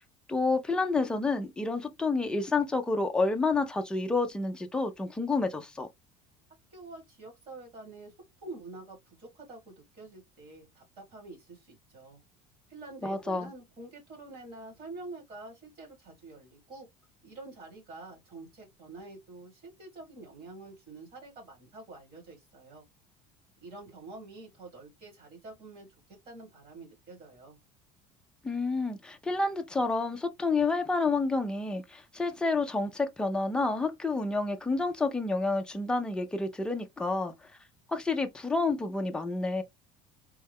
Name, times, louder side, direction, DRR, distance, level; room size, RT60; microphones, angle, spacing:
voice 1, 0.3-5.9 13.0-13.5 28.4-37.3 37.9-39.6, left 3 dB, 5° left, 0.3 m, -29 dB
voice 2, 6.7-8.1 8.4-12.2 12.7-16.9 17.2-22.8 23.6-25.9 26.3-27.6, right 2 dB, 40° right, 2.1 m, -47 dB
3.6 x 2.1 x 3.4 m
cardioid pair, 175°, 15 cm